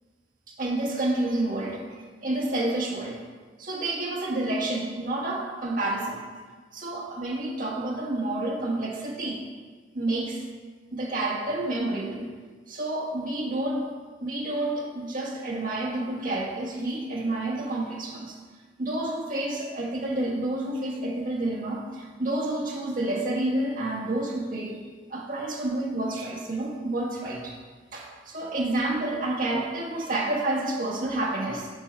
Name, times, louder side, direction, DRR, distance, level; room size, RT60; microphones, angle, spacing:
voice 1, 0.5-1.8 2.2-3.2 3.6-6.2 6.7-9.4 9.9-10.5 10.9-12.2 12.7-13.9 14.2-18.4 18.8-24.8 25.1-27.6 27.9-31.7, right 2 dB, 50° right, -3 dB, 1.6 m, -29 dB
8.1 x 6.7 x 4.3 m, 1.5 s
head